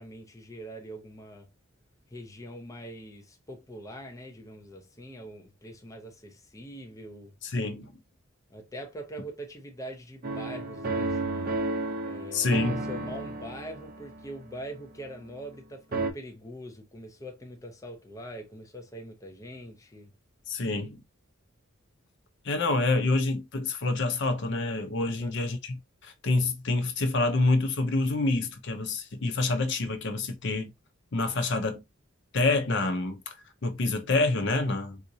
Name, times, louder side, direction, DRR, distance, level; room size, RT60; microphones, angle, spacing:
voice 1, 0.0-1.5 2.1-7.3 8.5-11.5 12.0-20.1 25.1-25.3, equal, 15° left, 0.6 m, -43 dB
voice 2, 7.4-8.0 12.3-12.8 20.5-21.0 22.4-30.7 31.1-31.8 32.3-33.4 33.6-35.0, left 2 dB, 60° left, 0.7 m, -27 dB
sound 1, 10.2-15.6 15.9-16.1, right 2 dB, 45° right, 0.6 m, -33 dB
3.8 x 2.5 x 2.7 m
head